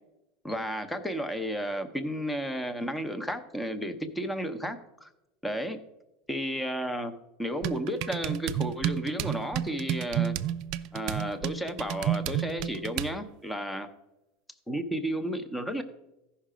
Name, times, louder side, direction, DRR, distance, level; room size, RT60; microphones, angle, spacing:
voice 1, 0.4-5.1 5.4-5.8 6.3-7.1 7.4-10.3 10.9-13.9 14.7-15.8, equal, 5° left, 9 dB, 0.7 m, -32 dB
sound 1, 7.6-13.2, right 11 dB, 50° right, 0.4 m, -31 dB
14.5 x 5.7 x 5.0 m, 0.94 s
supercardioid pair, 155°, 0 cm